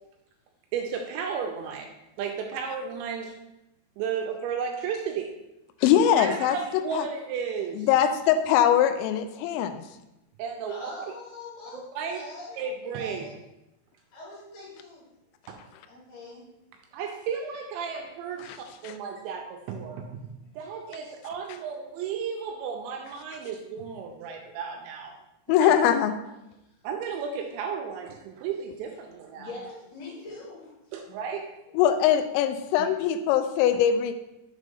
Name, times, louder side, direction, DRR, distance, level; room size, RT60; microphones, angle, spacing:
voice 1, 0.7-1.9 2.2-3.4 4.0-5.3 5.9-7.9 10.4-10.9 11.7-12.3 12.6-13.3 15.5-15.6 16.9-25.2 25.5-25.7 26.8-29.5 30.9-31.4 32.8-32.9, right 6 dB, 85° right, 3 dB, 2.6 m, -34 dB
voice 2, 5.8-6.6 6.9-7.0 7.8-9.8 18.4-18.6 18.8-18.9 25.5-26.1 31.8-34.1, left 9 dB, 85° left, 8 dB, 2.6 m, -22 dB
voice 3, 10.7-12.7 13.0-13.3 14.1-15.0 15.9-16.5 24.1-24.3 29.3-30.7, left 1 dB, 60° left, -6 dB, 3.4 m, -42 dB
7.4 x 3.5 x 5.3 m, 0.91 s
omnidirectional pair, 5.7 m